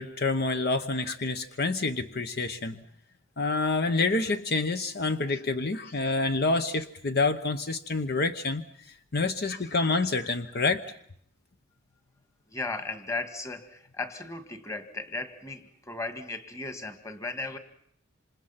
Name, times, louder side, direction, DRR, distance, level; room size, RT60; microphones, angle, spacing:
voice 1, 0.0-2.8 3.4-8.6 9.1-10.9, left 3 dB, 55° left, 9 dB, 0.9 m, -27 dB
voice 2, 12.5-17.6, left 3 dB, 15° left, 8 dB, 1.8 m, -36 dB
27.5 x 26.5 x 5.8 m, 0.67 s
head